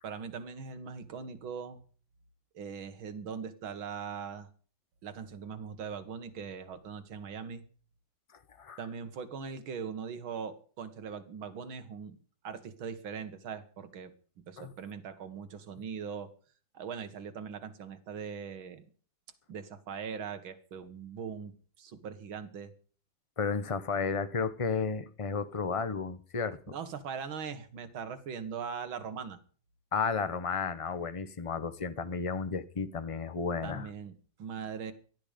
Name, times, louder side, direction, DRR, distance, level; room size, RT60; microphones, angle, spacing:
voice 1, 0.0-1.8 2.5-4.5 5.0-7.6 8.8-12.2 12.4-14.1 14.5-16.3 16.7-18.9 19.5-22.7 26.7-29.4 33.6-34.1 34.4-34.9, right 6 dB, 85° right, 2.3 m, -40 dB
voice 2, 23.4-26.6 29.9-33.9, left 5 dB, 40° left, 0.4 m, -33 dB
18.0 x 12.5 x 5.1 m
omnidirectional pair, 2.1 m